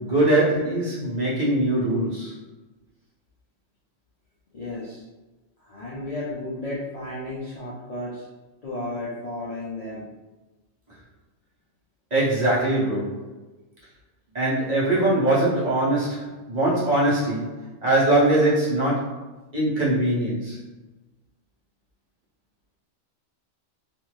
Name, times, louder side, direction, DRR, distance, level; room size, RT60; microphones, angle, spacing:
voice 1, 0.0-2.3 12.1-13.3 14.3-19.2 19.5-20.6, right 1 dB, 35° right, -8 dB, 0.9 m, -22 dB
voice 2, 4.5-5.0 5.6-8.2 8.6-10.1, left 1 dB, 50° left, -8 dB, 0.4 m, -33 dB
2.6 x 2.5 x 3.1 m, 1.1 s
omnidirectional pair, 1.4 m